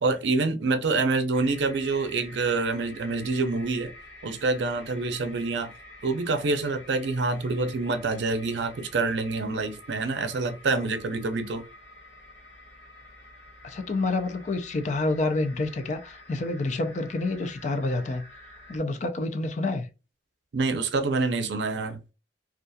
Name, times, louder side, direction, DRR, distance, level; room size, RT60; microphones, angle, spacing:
voice 1, 0.0-3.9 4.2-5.7 6.0-11.6 20.5-22.0, right 3 dB, 80° right, 0.5 m, -26 dB
sound 1, 1.3-18.8, left 1 dB, 70° left, 1.2 m, -49 dB
voice 2, 13.6-18.3 18.7-19.9, left 2 dB, 40° left, 0.4 m, -28 dB
2.4 x 2.2 x 2.6 m
head